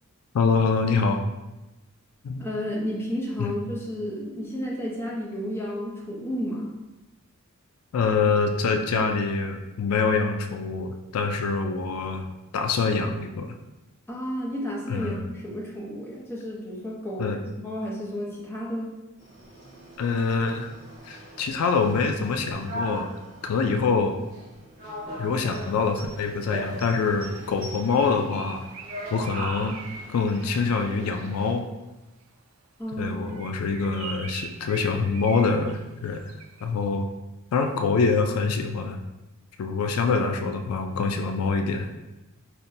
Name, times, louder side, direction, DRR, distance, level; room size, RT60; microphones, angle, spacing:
voice 1, 0.3-1.2 2.2-2.4 3.4-3.5 7.9-12.2 12.5-13.6 14.9-15.3 17.2-17.4 20.0-20.7 21.0-23.1 23.4-24.2 25.2-28.6 29.1-29.8 30.1-31.7 33.0-36.2 36.6-37.1 37.5-39.0 39.6-41.9, left 4 dB, 85° left, 5 dB, 0.3 m, -25 dB
voice 2, 2.4-6.7 14.1-17.3 17.6-18.9 32.8-33.2, equal, 10° left, -5 dB, 0.6 m, -32 dB
sound 1, 19.2-31.5, equal, 45° right, 1.2 m, -40 dB
Bird, 27.5-31.6 33.2-36.7, right 6 dB, 70° right, 0.4 m, -43 dB
5.5 x 2.1 x 2.6 m, 1.0 s
head